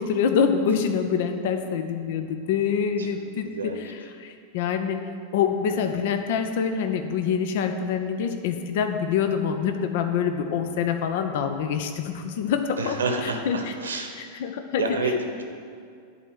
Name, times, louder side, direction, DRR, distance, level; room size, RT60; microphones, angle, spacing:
voice 1, 0.0-5.0 5.3-13.0 13.2-13.7 14.2-15.1, left 7 dB, 50° left, 7 dB, 0.7 m, -26 dB
voice 2, 3.4-3.8 5.8-5.9 12.8-14.2 14.8-15.4, right 2 dB, 70° right, 4 dB, 1.2 m, -29 dB
11.0 x 4.3 x 7.8 m, 2.3 s
figure-of-eight pair, 90°, 0 cm